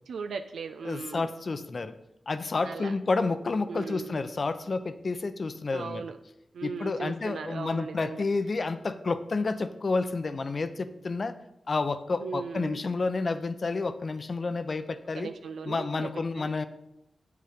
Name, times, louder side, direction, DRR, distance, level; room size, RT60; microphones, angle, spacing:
voice 1, 0.1-1.3 2.6-2.9 3.7-4.2 5.7-6.2 6.5-8.2 12.2-12.8 15.2-16.6, right 5 dB, 85° right, 8 dB, 0.4 m, -38 dB
voice 2, 0.8-1.9 2.3-6.0 6.6-11.4 11.7-15.3 15.7-16.7, left 3 dB, 55° left, 11 dB, 0.6 m, -30 dB
7.7 x 6.8 x 5.0 m, 0.85 s
cardioid pair, 40°, 0 cm